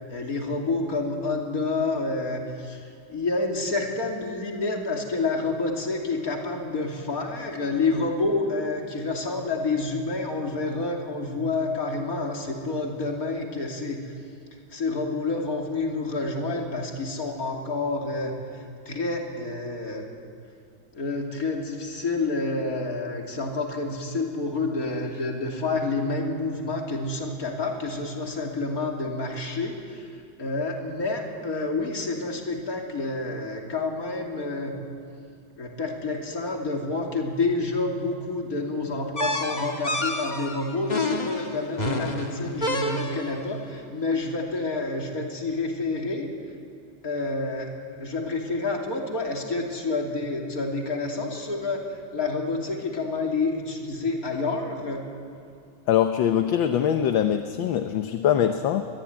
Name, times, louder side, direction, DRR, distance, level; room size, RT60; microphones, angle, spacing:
voice 1, 0.1-14.0 14.7-20.1 20.9-30.1 30.4-34.7 35.6-46.3 47.0-51.8 52.1-55.0, left 3 dB, 45° left, 1 dB, 3.4 m, -28 dB
sound 1, 39.2-43.4, left 1 dB, 20° left, 1.6 m, -29 dB
voice 2, 55.9-58.8, left 9 dB, 70° left, 7 dB, 1.6 m, -23 dB
24.0 x 22.0 x 9.5 m, 2.4 s
omnidirectional pair, 2.2 m